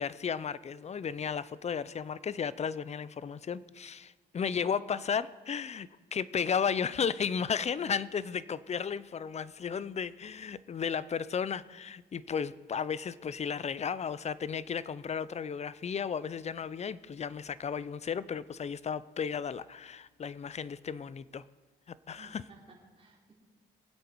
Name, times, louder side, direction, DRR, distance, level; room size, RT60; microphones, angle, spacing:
voice 1, 0.0-21.4 22.1-22.4, left 7 dB, 35° left, 18 dB, 0.6 m, -34 dB
voice 2, 4.5-4.8 22.1-23.3, right 3 dB, 30° right, -3 dB, 4.5 m, -55 dB
23.5 x 8.3 x 4.6 m, 1.3 s
cardioid pair, 90°, 20 cm